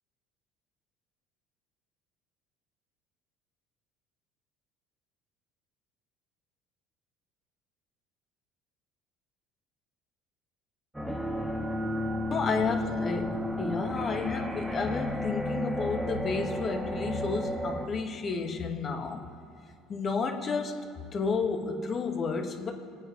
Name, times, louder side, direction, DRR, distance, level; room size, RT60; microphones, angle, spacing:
sound 1, 10.9-17.9, left 1 dB, 5° right, 1.4 m, -32 dB
voice 1, 12.3-19.3 19.9-22.7, left 4 dB, 35° left, 5 dB, 1.4 m, -31 dB
22.5 x 8.9 x 3.9 m, 2.5 s
supercardioid pair, 110°, 0 cm